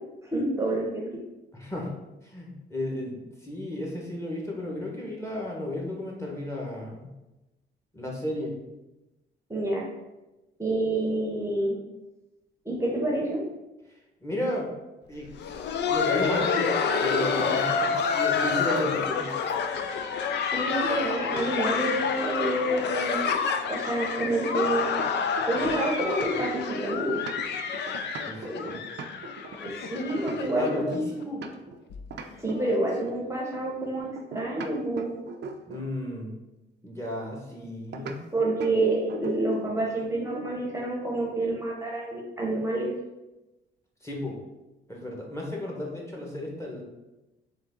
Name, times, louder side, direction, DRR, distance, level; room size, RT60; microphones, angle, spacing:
voice 1, 0.3-1.0 9.5-9.8 10.6-11.8 12.6-13.4 19.9-20.0 20.4-23.4 23.7-24.8 25.5-27.1 29.6-31.0 32.4-35.1 38.3-42.9, right 1 dB, 15° right, -3 dB, 0.9 m, -28 dB
voice 2, 1.5-1.9 2.2-7.1 7.9-8.6 13.9-14.7 15.1-15.3 15.9-19.3 28.3-28.8 30.3-31.4 35.7-36.3 36.8-38.2 44.0-44.4 44.9-46.8, left 1 dB, 15° left, -2 dB, 1.2 m, -33 dB
Laughter, 15.3-30.9 31.2-31.3 31.9-32.0 32.6-32.8 33.8-33.9, left 6 dB, 60° left, 0.5 m, -28 dB
sound 1, 23.7-25.7 26.0-31.8 32.1-33.3 34.2-35.9 37.9-38.2 38.6-38.8 39.1-39.7, right 4 dB, 60° right, 0.5 m, -41 dB
3.8 x 3.1 x 3.7 m, 1.0 s
cardioid pair, 90°, 20 cm